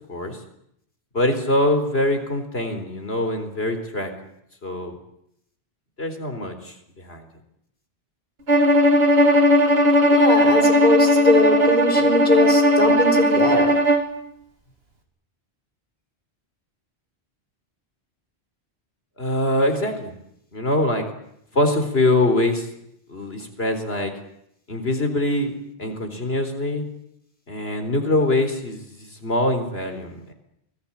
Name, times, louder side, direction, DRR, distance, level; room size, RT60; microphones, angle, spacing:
voice 1, 1.1-4.1 4.6-4.9 6.0-6.7 7.1-7.3 19.2-20.1 20.5-21.1 21.5-22.7 23.1-24.1 24.7-26.8 27.5-30.3, left 1 dB, 70° left, 7 dB, 4.3 m, -23 dB
Bowed string instrument, 8.5-14.1, equal, 70° right, 3.2 m, -17 dB
voice 2, 10.1-13.8, left 2 dB, 50° left, 5 dB, 5.3 m, -21 dB
28.0 x 20.0 x 8.9 m, 0.76 s
omnidirectional pair, 1.1 m